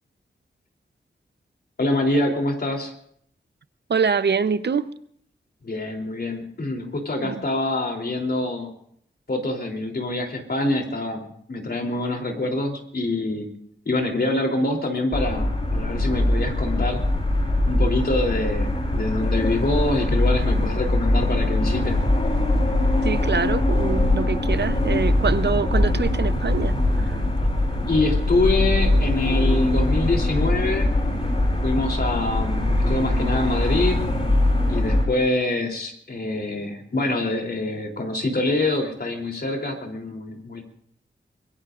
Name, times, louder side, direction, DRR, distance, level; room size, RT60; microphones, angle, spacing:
voice 1, 1.8-2.9 5.6-8.7 9.3-11.2 11.5-13.4 13.8-17.0 17.6-22.0 27.9-30.9 31.6-34.1 34.7-40.6, left 2 dB, 55° left, 3.4 m, -25 dB
voice 2, 3.9-4.9 7.2-7.3 23.0-27.2, right 5 dB, 65° right, 0.8 m, -25 dB
sound 1, 15.1-35.1, left 1 dB, 35° left, 7.3 m, -22 dB
25.0 x 21.5 x 2.5 m
wide cardioid pair, 85°, 19 cm